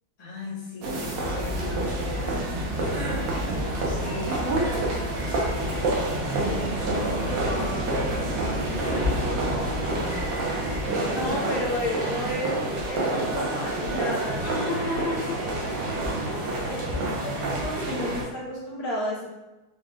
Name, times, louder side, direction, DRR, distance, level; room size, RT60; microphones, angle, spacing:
voice 1, 0.2-12.4 14.4-16.0, left 2 dB, 30° left, -7 dB, 0.7 m, -37 dB
sound 1, 0.8-18.2, right 2 dB, 65° right, 1.3 m, -28 dB
sound 2, 1.2-10.8, left 2 dB, 80° right, 1.5 m, -34 dB
voice 2, 11.1-14.4 15.4-19.3, left 1 dB, 70° left, -6 dB, 2.1 m, -32 dB
4.8 x 2.3 x 3.4 m, 1.0 s
omnidirectional pair, 2.4 m